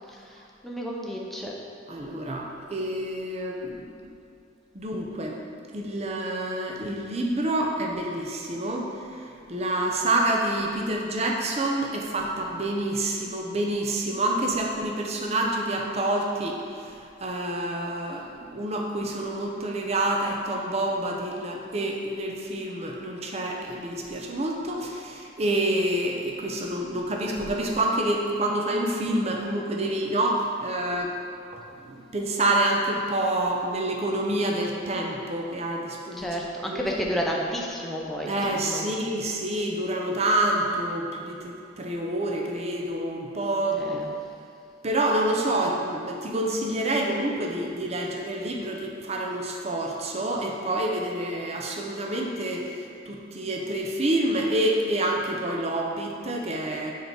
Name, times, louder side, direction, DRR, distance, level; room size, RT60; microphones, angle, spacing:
voice 1, 0.1-1.5 36.2-38.8 43.8-44.1, equal, ahead, -3 dB, 0.7 m, -31 dB
voice 2, 1.9-4.1 4.7-5.4 5.7-8.9 9.1-31.2 31.8-36.3 36.7-36.8 38.3-44.1 44.8-56.9, right 1 dB, 35° right, 0 dB, 0.7 m, -28 dB
6.5 x 4.6 x 5.2 m, 2.5 s
head